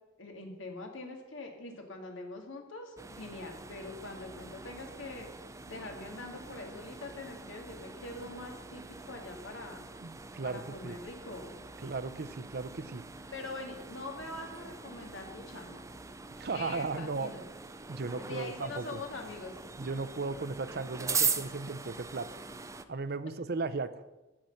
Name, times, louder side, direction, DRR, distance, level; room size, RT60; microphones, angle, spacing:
voice 1, 0.2-5.3 5.7-9.9 10.4-11.6 13.3-15.8 16.5-17.4 18.2-19.5, left 2 dB, 80° left, 2 dB, 2.1 m, -43 dB
sound 1, 3.0-22.9, right 5 dB, 15° right, 0.5 m, -41 dB
voice 2, 10.0-11.0 11.8-13.0 16.4-17.3 17.9-19.0 19.8-22.3 22.9-24.0, right 3 dB, 55° right, 13 dB, 0.6 m, -36 dB
15.0 x 6.0 x 6.5 m, 1.1 s
head